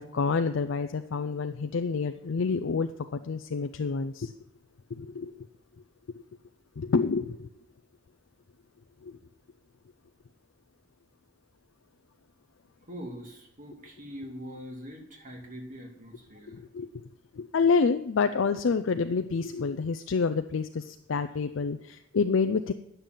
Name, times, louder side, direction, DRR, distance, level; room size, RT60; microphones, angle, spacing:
voice 1, 0.0-4.3 4.9-5.5 6.8-7.5 9.0-9.2 16.5-17.1 17.3-22.7, left 5 dB, 65° left, 9 dB, 0.4 m, -28 dB
voice 2, 12.9-16.6, equal, 40° right, 1 dB, 2.3 m, -43 dB
10.5 x 6.8 x 7.4 m, 0.79 s
head